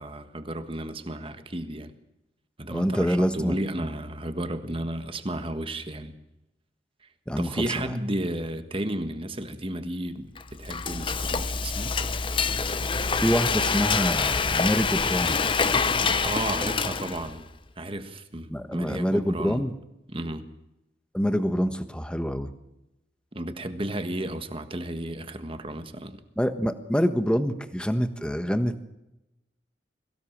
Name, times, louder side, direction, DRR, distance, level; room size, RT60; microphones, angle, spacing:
voice 1, 0.0-1.9 2.6-6.2 7.4-12.0 16.2-17.4 17.8-19.6 20.1-20.5 23.3-26.2, right 1 dB, 30° right, 9 dB, 1.5 m, -33 dB
voice 2, 2.7-3.6 7.3-7.6 13.2-15.4 18.5-19.7 21.1-22.5 26.4-28.9, equal, 5° left, 9 dB, 1.3 m, -26 dB
Frying (food), 10.4-17.4, left 5 dB, 25° left, 0.8 m, -26 dB
22.0 x 16.5 x 7.4 m, 0.93 s
head